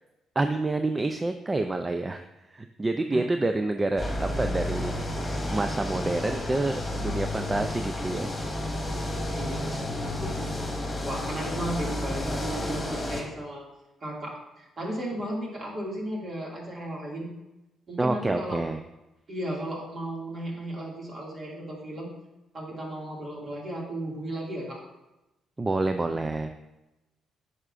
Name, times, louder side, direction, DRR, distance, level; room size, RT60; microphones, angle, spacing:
voice 1, 0.4-2.2 2.5-5.0 5.5-8.3 18.0-18.8 25.6-26.5, right 2 dB, 20° right, 7 dB, 0.4 m, -28 dB
sound 1, 4.0-13.2, left 1 dB, 20° left, 1.6 m, -31 dB
voice 2, 9.3-10.6 11.0-13.6 14.0-17.3 17.9-18.6 19.3-22.1 22.5-24.8, right 1 dB, 40° right, -3 dB, 2.3 m, -35 dB
9.5 x 5.6 x 2.5 m, 0.98 s
cardioid pair, 90°, 0 cm